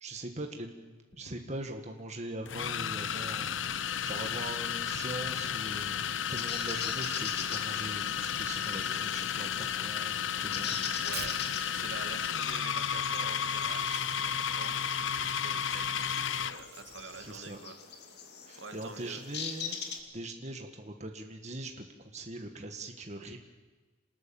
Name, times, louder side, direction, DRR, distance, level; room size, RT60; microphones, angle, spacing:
voice 1, 0.0-3.6 4.0-6.0 6.3-11.0 17.0-17.6 18.5-19.8 20.1-23.4, right 1 dB, 35° right, 4 dB, 1.9 m, -41 dB
sound 1, 1.1-1.3 2.5-16.6, left 8 dB, 75° left, 0.7 m, -33 dB
sound 2, 6.2-20.0, left 6 dB, 55° left, 2.4 m, -43 dB
voice 2, 11.0-11.4 11.7-17.8 18.6-19.2, right 4 dB, 80° right, 6 dB, 2.4 m, -46 dB
Tearing, 11.1-17.6, right 9 dB, 50° right, 0.8 m, -52 dB
27.5 x 20.0 x 7.3 m, 1.3 s
head